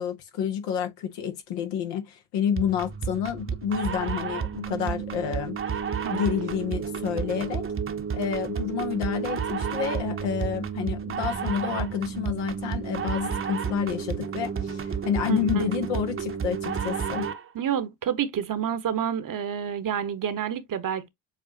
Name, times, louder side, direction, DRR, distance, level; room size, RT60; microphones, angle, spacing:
voice 1, 0.0-5.6 6.1-7.6 8.1-17.3, left 8 dB, 80° left, 1.3 m, -29 dB
sound 1, 2.6-17.5, right 7 dB, 30° right, 0.9 m, -31 dB
voice 2, 15.3-15.7 17.5-21.1, right 9 dB, 50° right, 1.1 m, -29 dB
7.3 x 2.5 x 2.6 m
hypercardioid pair, 55°, 42 cm